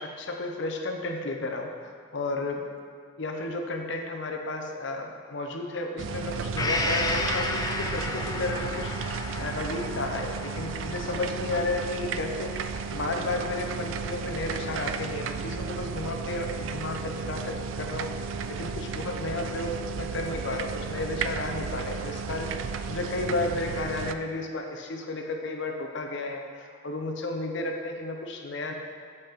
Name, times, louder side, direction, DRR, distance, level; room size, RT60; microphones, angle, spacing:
voice 1, 0.0-2.6 3.2-22.5 22.9-28.7, left 2 dB, 65° left, 3 dB, 0.7 m, -33 dB
sound 1, 6.0-24.1, right 5 dB, 70° right, 0.3 m, -34 dB
Gong, 6.6-14.2 14.6-14.7, left 2 dB, 20° left, 0.4 m, -34 dB
8.0 x 5.3 x 3.5 m, 2.1 s
head